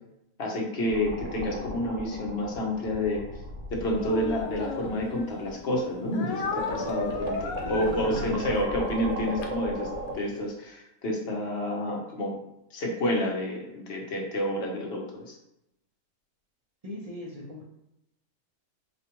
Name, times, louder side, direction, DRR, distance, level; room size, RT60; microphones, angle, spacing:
voice 1, 0.4-3.2 3.7-7.3 7.7-9.9 10.1-12.4 12.7-15.3, left 1 dB, 50° left, -1 dB, 1.0 m, -29 dB
sound 1, 0.9-5.9 6.3-10.1, right 1 dB, 60° right, 1.1 m, -36 dB
Speech, 3.9-5.5 6.1-10.2, left 5 dB, 75° left, 1.0 m, -36 dB
voice 2, 7.6-8.5 16.8-17.6, left 2 dB, 35° right, -3 dB, 0.7 m, -37 dB
5.0 x 2.4 x 3.0 m, 0.86 s
omnidirectional pair, 1.5 m